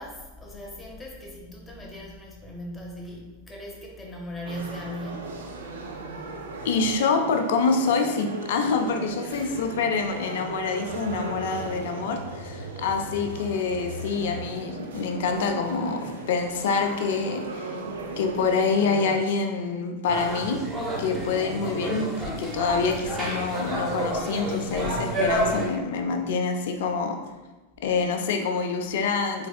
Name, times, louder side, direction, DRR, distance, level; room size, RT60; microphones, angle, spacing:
voice 1, 0.0-5.4 9.3-9.7, equal, 15° left, -2 dB, 0.6 m, -39 dB
sound 1, 4.4-19.2, right 3 dB, 65° right, 0.4 m, -37 dB
voice 2, 6.6-17.7 18.2-20.6 21.0-27.2 27.8-29.5, left 4 dB, 55° left, 4 dB, 0.4 m, -26 dB
sound 2, 10.8-15.9, left 1 dB, 90° right, 0.8 m, -42 dB
sound 3, 20.1-25.7, right 1 dB, 20° right, 1.0 m, -29 dB
4.1 x 3.2 x 2.3 m, 1.1 s
figure-of-eight pair, 90°, 0 cm